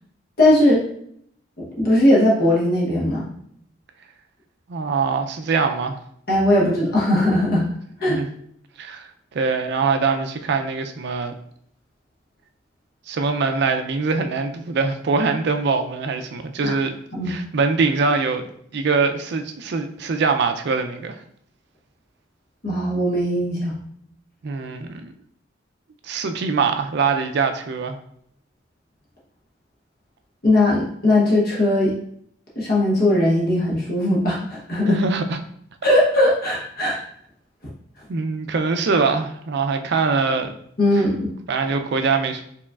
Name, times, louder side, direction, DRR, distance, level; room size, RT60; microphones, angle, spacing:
voice 1, 0.4-0.8 1.8-3.3 6.3-7.6 8.0-8.2 16.6-16.8 17.1-17.3 22.6-23.7 30.4-31.9 32.6-35.0 35.8-37.0 40.8-41.3, left 1 dB, 50° left, -5 dB, 1.0 m, -19 dB
voice 2, 4.7-6.0 8.1-8.3 8.8-11.3 13.1-16.9 17.3-18.5 18.7-21.2 24.4-25.1 26.0-28.0 34.9-35.4 38.1-40.5 40.9-41.0 41.5-42.4, right 4 dB, 55° right, 6 dB, 0.4 m, -23 dB
4.7 x 3.1 x 2.3 m, 0.68 s
head